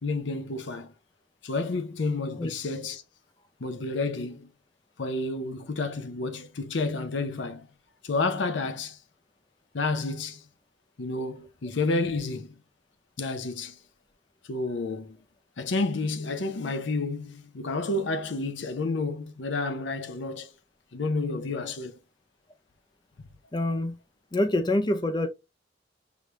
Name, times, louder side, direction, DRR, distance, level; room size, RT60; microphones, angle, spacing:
voice 1, 0.0-0.9 1.4-3.0 3.6-4.5 5.0-7.7 8.0-9.0 9.7-10.4 11.0-12.5 13.2-13.8 14.5-15.2 15.6-20.5 20.9-22.0 23.2-23.3, left 3 dB, 75° left, 0.7 m, -30 dB
voice 2, 23.5-24.0 24.3-25.3, left 1 dB, 25° left, 0.5 m, -26 dB
5.0 x 3.1 x 2.5 m
head